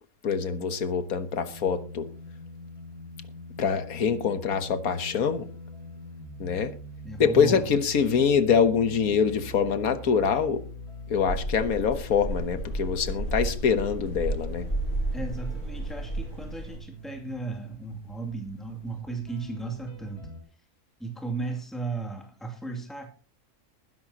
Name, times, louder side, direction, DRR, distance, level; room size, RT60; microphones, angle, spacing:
voice 1, 0.2-2.1 3.6-5.5 6.4-6.7 7.2-10.6 11.1-14.7, left 6 dB, 70° left, 1.6 m, -25 dB
sound 1, 1.5-20.4, equal, 90° left, 4.9 m, -43 dB
voice 2, 7.0-7.7 15.1-20.3 21.0-23.1, right 3 dB, ahead, 2.4 m, -35 dB
sound 2, 11.3-16.8, right 2 dB, 30° left, 8.2 m, -32 dB
20.5 x 11.0 x 2.9 m
omnidirectional pair, 1.6 m